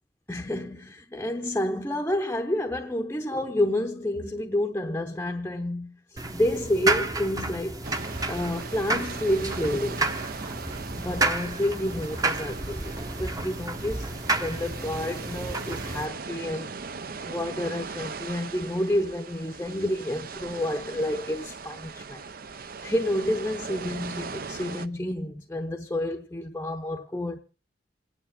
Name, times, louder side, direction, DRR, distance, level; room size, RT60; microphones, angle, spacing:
voice 1, 0.3-7.9 8.3-10.1 10.9-14.1 14.4-16.7 17.3-22.2 22.8-27.4, left 1 dB, 10° left, 0.7 m, -29 dB
sound 1, 6.2-16.1, right 2 dB, 20° right, 0.9 m, -31 dB
sound 2, 7.8-24.9, right 4 dB, 50° right, 0.6 m, -39 dB
27.5 x 9.6 x 3.6 m
head